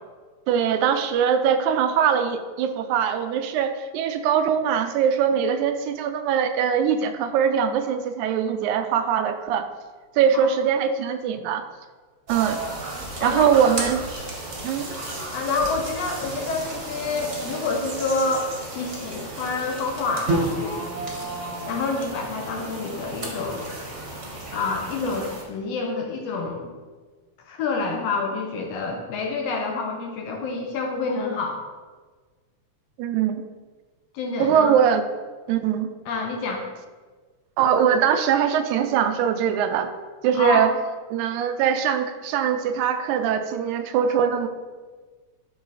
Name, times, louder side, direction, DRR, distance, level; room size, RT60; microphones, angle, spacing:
voice 1, 0.5-9.7 10.2-11.6 12.3-12.6 13.2-14.0 14.6-14.9 33.0-33.4 34.4-35.0 35.5-35.9 37.6-39.9 40.2-40.7 41.1-44.5, right 8 dB, 85° right, 8 dB, 2.0 m, -22 dB
sound 1, 12.3-25.4, right 2 dB, 45° right, 0.9 m, -32 dB
voice 2, 13.2-13.5 15.3-21.0 21.7-23.7 24.5-26.7 27.5-31.6 34.1-34.7 36.1-36.6 40.3-40.7, left 3 dB, 70° left, 1 dB, 1.8 m, -28 dB
11.5 x 3.9 x 4.1 m, 1.4 s
omnidirectional pair, 3.4 m